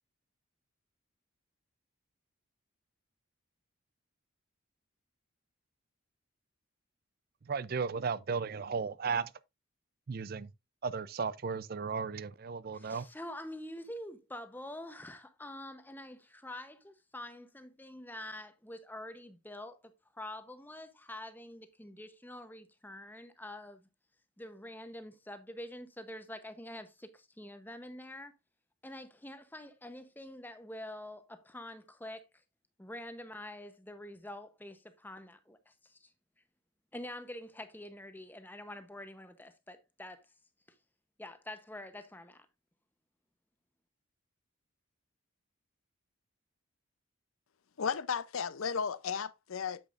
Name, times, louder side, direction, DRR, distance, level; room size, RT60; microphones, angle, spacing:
voice 1, 7.4-9.3 10.1-10.5 10.8-13.1, right 5 dB, 45° right, 0.4 m, -35 dB
voice 2, 12.7-23.9 24.4-28.3 28.8-32.4 32.8-36.1 36.9-40.3 41.2-42.5, left 1 dB, 10° left, 0.8 m, -46 dB
voice 3, 47.8-49.8, left 6 dB, 75° left, 0.5 m, -34 dB
8.5 x 8.1 x 2.5 m
head